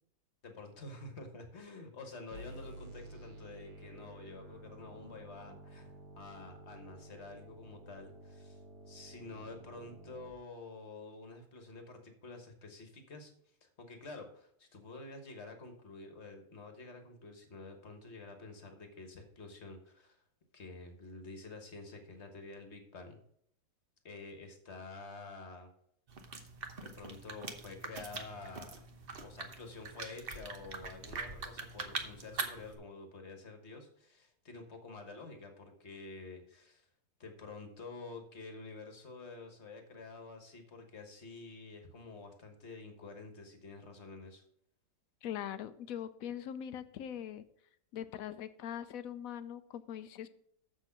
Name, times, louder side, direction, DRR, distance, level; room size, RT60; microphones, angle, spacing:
voice 1, 0.4-8.6 8.9-13.3 13.6-20.2 20.5-23.2 24.0-25.7 26.8-28.7 29.2-36.9 37.2-44.4, left 3 dB, 40° left, 5 dB, 1.5 m, -49 dB
sound 1, 2.3-10.3, right 1 dB, 70° right, 1.7 m, -52 dB
sound 2, 26.1-32.8, right 4 dB, 40° right, 0.9 m, -43 dB
voice 2, 45.2-47.4 47.9-50.3, left 10 dB, 70° left, 13 dB, 0.9 m, -42 dB
7.3 x 6.4 x 5.7 m, 0.68 s
omnidirectional pair, 1.9 m